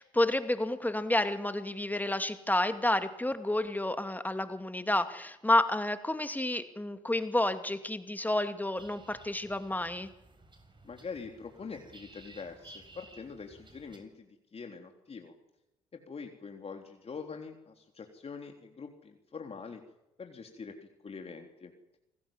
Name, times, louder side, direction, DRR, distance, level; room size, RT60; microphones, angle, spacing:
voice 1, 0.0-10.1, left 1 dB, 10° left, 9 dB, 2.5 m, -30 dB
sound 1, 8.8-14.0, right 2 dB, 30° right, 7.3 m, -55 dB
voice 2, 10.8-15.3 15.9-19.8 20.2-21.7, left 5 dB, 40° left, 4 dB, 3.7 m, -44 dB
27.5 x 20.0 x 7.5 m, 0.91 s
hypercardioid pair, 50°, 16 cm